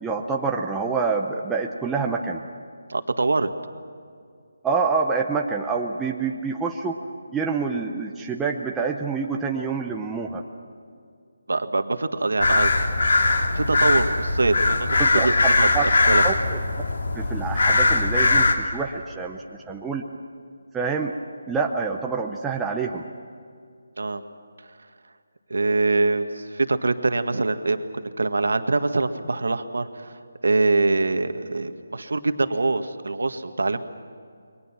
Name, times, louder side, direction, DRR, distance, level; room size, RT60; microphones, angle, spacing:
voice 1, 0.0-2.4 4.6-7.0 7.3-10.4 15.0-15.3 15.7-15.9 16.2-16.6 17.1-20.0 20.7-21.2 21.5-23.0, right 5 dB, 5° right, 0 dB, 0.6 m, -27 dB
voice 2, 2.9-3.5 11.5-12.7 13.5-15.7 16.1-16.2 24.0-24.2 25.5-30.1 30.4-33.9, right 3 dB, 85° right, 8 dB, 1.8 m, -24 dB
sound 1, 12.4-18.5, left 3 dB, 55° left, 2.6 m, -20 dB
29.0 x 23.5 x 6.1 m, 2.3 s
hypercardioid pair, 175°, 0 cm